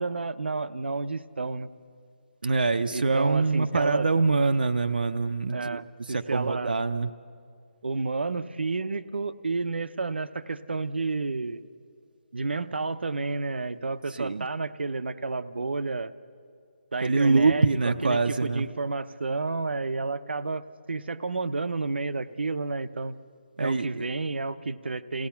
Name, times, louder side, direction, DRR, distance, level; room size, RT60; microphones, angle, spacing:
voice 1, 0.0-1.7 2.9-4.1 5.5-6.8 7.8-11.6 12.3-16.1 16.9-20.6 20.9-23.1 23.6-25.3, right 3 dB, 90° right, 12 dB, 0.8 m, -31 dB
voice 2, 2.4-7.1 14.2-14.5 17.0-18.7 23.6-24.0, right 3 dB, 60° right, 7 dB, 0.6 m, -24 dB
28.5 x 17.0 x 5.8 m, 2.3 s
hypercardioid pair, 180°, 6 cm